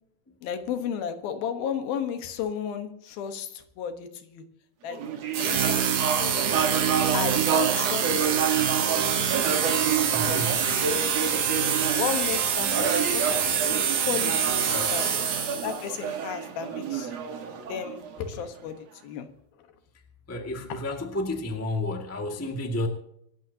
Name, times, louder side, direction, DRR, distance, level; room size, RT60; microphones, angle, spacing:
voice 1, 0.4-4.4 4.8-5.0 5.4-6.4 7.1-10.6 12.0-13.5 14.1-15.0 15.6-17.1 17.7-19.3, left 8 dB, 85° left, 8 dB, 3.2 m, -34 dB
sound 1, 4.9-18.6, right 7 dB, 55° right, 2.2 m, -30 dB
sound 2, 5.3-15.9, right 7 dB, 75° right, 3.8 m, -26 dB
voice 2, 10.1-10.6 14.7-14.9 20.3-22.9, left 1 dB, 10° left, 3 dB, 0.9 m, -31 dB
25.5 x 14.0 x 2.8 m, 0.73 s
omnidirectional pair, 4.1 m